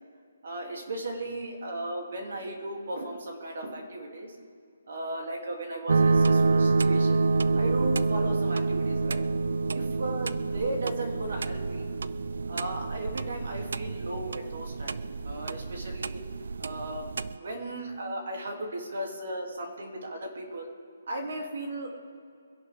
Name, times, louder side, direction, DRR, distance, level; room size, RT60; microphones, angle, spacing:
voice 1, 0.4-4.3 4.9-7.2 7.5-9.2 9.7-11.8 12.5-16.2 16.6-17.1 17.3-20.7 21.1-21.9, right 1 dB, 55° right, 1 dB, 2.9 m, -36 dB
sound 1, 5.9-17.4, right 3 dB, 70° right, 0.5 m, -27 dB
24.0 x 11.5 x 3.6 m, 2.4 s
hypercardioid pair, 170°, 0 cm